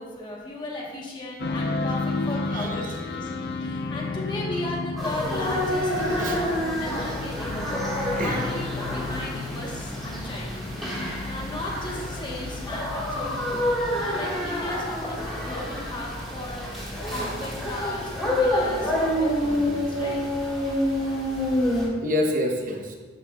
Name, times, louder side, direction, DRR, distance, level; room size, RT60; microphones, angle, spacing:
voice 1, 0.0-3.3 3.6-7.9 8.2-10.6 11.2-13.6 14.0-20.2, left 1 dB, 25° left, -3 dB, 1.1 m, -36 dB
sound 1, 1.4-21.3, left 3 dB, 65° left, 0.5 m, -35 dB
voice 2, 2.5-3.0 6.0-6.6 8.1-8.5 22.0-23.0, equal, 45° right, 1 dB, 0.8 m, -28 dB
sound 2, 5.0-21.9, left 1 dB, ahead, 1.6 m, -28 dB
11.5 x 5.3 x 2.3 m, 1.4 s
head